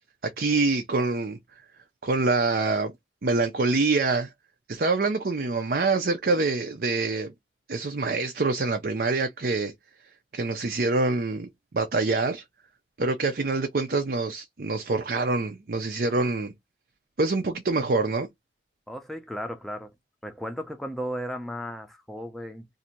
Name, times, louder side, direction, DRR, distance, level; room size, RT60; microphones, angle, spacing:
voice 1, 0.2-1.4 2.0-2.9 3.2-4.3 4.7-7.3 7.7-9.7 10.3-12.4 13.0-16.5 17.2-18.3, right 3 dB, 55° right, 0.5 m, -25 dB
voice 2, 18.9-19.9 20.2-22.7, equal, ahead, 0.6 m, -35 dB
2.7 x 2.5 x 4.3 m
head